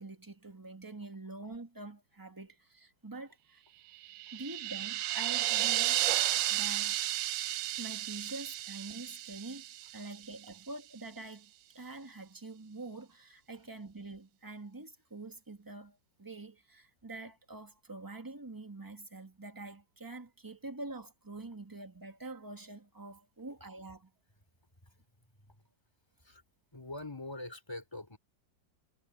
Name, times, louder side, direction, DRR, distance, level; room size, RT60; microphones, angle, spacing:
voice 1, 0.0-3.6 4.3-6.0 6.5-7.0 7.8-9.6 9.9-24.1, right 2 dB, 10° right, 1.9 m, -46 dB
sound 1, 4.0-10.2, right 14 dB, 85° right, 1.3 m, -33 dB
voice 2, 26.7-28.2, left 2 dB, 15° left, 3.3 m, -44 dB
omnidirectional pair, 2.0 m